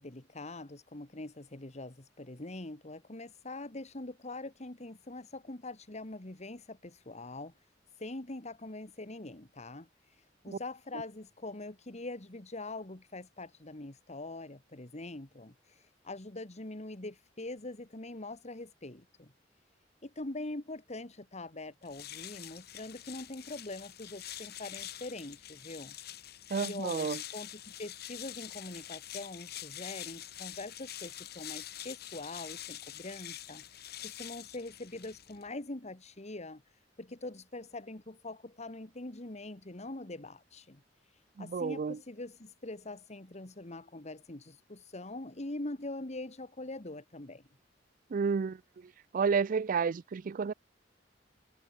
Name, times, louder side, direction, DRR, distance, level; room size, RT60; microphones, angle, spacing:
voice 1, 0.0-7.5 8.0-19.3 20.0-26.0 26.6-36.6 37.0-40.8 41.1-47.4, left 2 dB, 40° left, 1.8 m, -43 dB
sound 1, 21.8-35.5, left 12 dB, 60° left, 2.4 m, -45 dB
voice 2, 26.5-27.2 41.4-42.0 48.1-48.6 49.1-50.5, right 5 dB, 45° right, 0.4 m, -30 dB
head